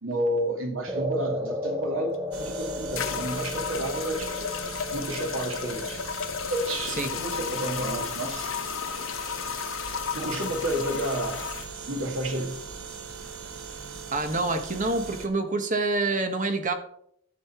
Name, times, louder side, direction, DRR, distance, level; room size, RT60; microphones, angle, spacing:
voice 1, 0.0-4.3 4.9-6.0 6.5-8.5 10.1-11.5 11.9-12.6, right 1 dB, 75° right, 2.1 m, -30 dB
sound 1, 0.9-9.4, left 1 dB, 10° right, 0.6 m, -36 dB
sound 2, 2.1-2.2 3.0-11.7, left 7 dB, 70° left, 0.7 m, -33 dB
sound 3, 2.3-15.3, right 5 dB, 90° right, 1.5 m, -40 dB
voice 2, 14.1-16.7, right 2 dB, 40° right, 1.2 m, -27 dB
13.5 x 6.6 x 4.4 m
head